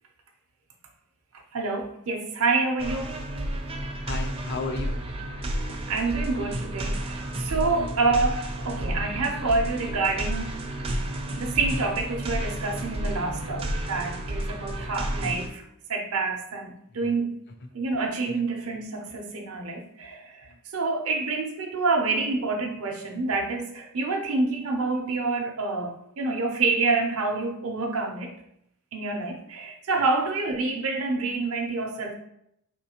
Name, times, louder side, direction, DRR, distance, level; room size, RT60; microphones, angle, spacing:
voice 1, 1.5-3.2 5.9-10.5 11.4-15.6 15.9-17.4 17.7-28.3 28.9-32.1, right 3 dB, 65° right, 1 dB, 0.6 m, -27 dB
sound 1, 2.8-15.5, right 1 dB, 25° right, 0.5 m, -31 dB
voice 2, 4.0-5.8 7.7-7.9 16.9-17.2 17.6-17.7 18.3-18.5 20.5-20.6, left 3 dB, 50° left, 5 dB, 0.5 m, -36 dB
4.3 x 3.1 x 2.9 m, 0.75 s
head